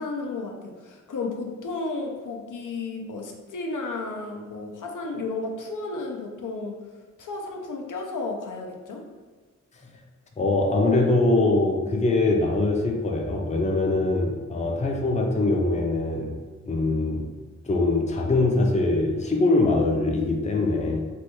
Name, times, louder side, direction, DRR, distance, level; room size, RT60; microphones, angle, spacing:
voice 1, 0.0-6.8 7.2-9.0, left 3 dB, 85° left, 1 dB, 0.5 m, -33 dB
voice 2, 10.4-16.4 16.7-17.3 17.6-21.0, left 2 dB, 25° left, 1 dB, 0.4 m, -23 dB
3.3 x 2.2 x 2.9 m, 1.3 s
wide cardioid pair, 85°, 30 cm